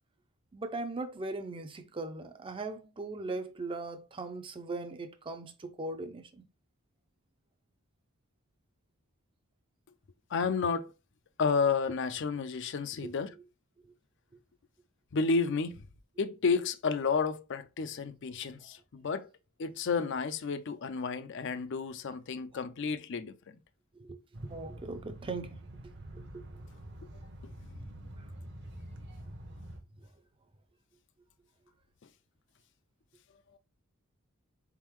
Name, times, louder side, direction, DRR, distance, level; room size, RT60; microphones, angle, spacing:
voice 1, 0.5-6.4 13.0-13.2 24.0-25.6 26.1-26.5, right 3 dB, 25° right, 0.5 m, -39 dB
voice 2, 10.3-10.9 11.4-13.3 15.1-15.8 16.2-19.3 19.6-23.3, left 5 dB, 55° left, 0.4 m, -31 dB
sound 1, 24.3-29.8, right 1 dB, 55° right, 0.8 m, -46 dB
4.0 x 3.6 x 3.0 m
head